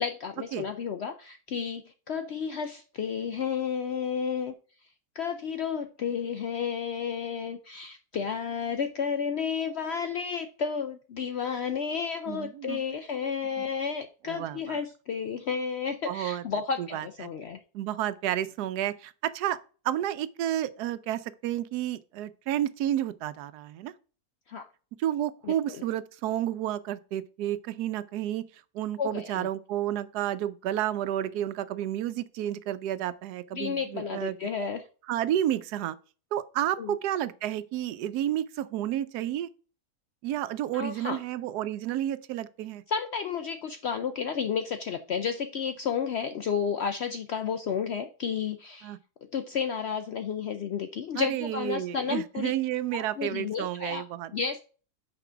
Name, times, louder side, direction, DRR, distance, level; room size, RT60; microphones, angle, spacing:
voice 1, 0.0-4.5 5.1-17.6 24.5-24.7 25.4-25.8 29.0-29.5 33.5-34.8 36.8-36.9 40.7-41.2 42.9-48.9 49.3-52.5 52.9-54.0 54.3-54.6, left 6 dB, 70° left, 0.6 m, -32 dB
voice 2, 12.3-12.8 13.6-13.7 14.3-14.8 16.1-16.4 16.8-17.1 17.7-19.6 19.8-23.9 25.0-28.5 28.7-34.4 35.1-36.0 36.3-39.5 40.2-42.8 48.8-49.0 51.2-54.3, right 12 dB, 85° right, 1.1 m, -31 dB
6.0 x 5.0 x 5.5 m
omnidirectional pair, 1.7 m